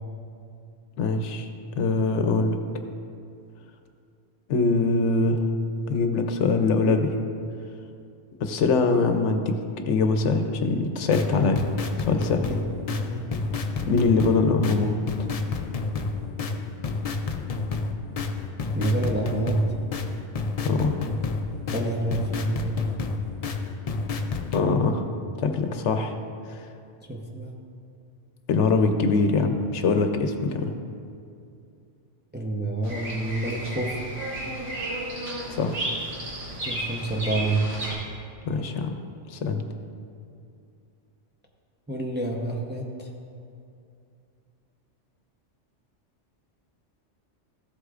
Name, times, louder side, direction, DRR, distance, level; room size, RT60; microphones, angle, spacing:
voice 1, 1.0-1.5 1.8-2.6 4.5-5.5 5.9-7.1 8.4-9.6 9.9-11.6 12.0-12.5 13.9-15.0 20.6-21.0 24.5-25.0 25.4-26.1 28.5-30.8 35.5-35.9 38.5-38.9 39.3-39.7, left 3 dB, 75° left, 6 dB, 1.0 m, -23 dB
sound 1, 11.0-24.6, left 4 dB, 60° left, 0.4 m, -30 dB
voice 2, 12.5-13.2 18.7-19.6 21.7-22.8 27.0-27.5 32.3-34.0 36.6-37.7 41.9-43.1, right 2 dB, 10° right, 0 dB, 0.6 m, -28 dB
Bird vocalization bird call bird song, 32.8-37.9, right 1 dB, 75° right, 2.3 m, -33 dB
14.5 x 8.1 x 2.5 m, 2.5 s
omnidirectional pair, 1.2 m